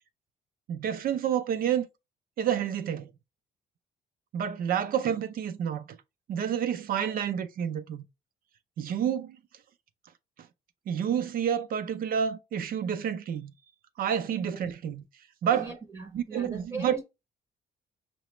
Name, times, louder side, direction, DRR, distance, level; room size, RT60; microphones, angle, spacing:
voice 1, 0.7-1.9 2.4-3.1 4.3-6.0 6.3-8.0 8.8-9.4 10.9-13.5 14.0-15.0 15.4-15.7 16.1-17.0, right 8 dB, 55° right, 0.4 m, -29 dB
voice 2, 15.5-17.0, right 3 dB, 15° right, 0.7 m, -40 dB
5.7 x 2.0 x 3.0 m
cardioid pair, 130°, 17 cm